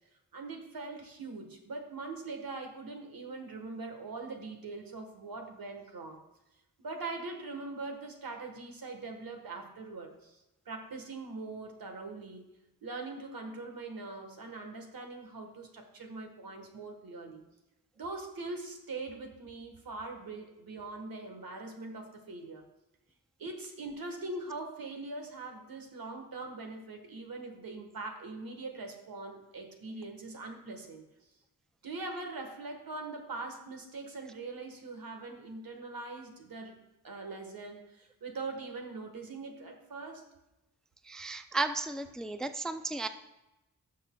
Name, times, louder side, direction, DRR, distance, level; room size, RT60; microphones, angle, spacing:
voice 1, 0.3-6.2 6.8-12.4 12.8-17.4 18.0-22.6 23.4-31.0 31.8-36.8 37.0-40.2, right 3 dB, 85° right, 4 dB, 1.4 m, -42 dB
voice 2, 41.1-43.1, right 3 dB, ahead, 9 dB, 0.3 m, -34 dB
18.0 x 6.6 x 2.3 m, 0.97 s
wide cardioid pair, 125°, 34 cm